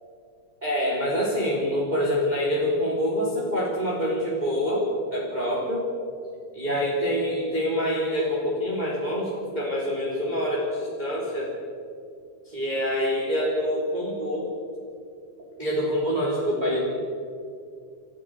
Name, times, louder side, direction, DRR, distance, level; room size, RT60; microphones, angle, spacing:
voice 1, 0.6-5.8 6.5-11.5 12.5-14.5 15.6-16.8, equal, 15° right, -5 dB, 3.6 m, -26 dB
29.0 x 14.5 x 6.6 m, 2.4 s
omnidirectional pair, 3.6 m